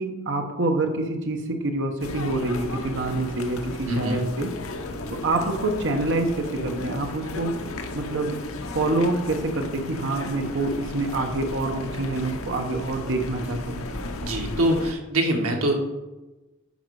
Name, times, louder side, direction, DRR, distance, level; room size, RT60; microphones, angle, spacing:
voice 1, 0.0-4.5 5.1-7.5 7.9-8.4 8.7-13.8, right 2 dB, 60° right, 4 dB, 1.2 m, -26 dB
sound 1, 2.0-14.9, left 2 dB, 75° left, 0.9 m, -35 dB
voice 2, 14.2-15.7, right 1 dB, 85° right, 1 dB, 1.6 m, -23 dB
9.4 x 5.4 x 4.8 m, 1.1 s
head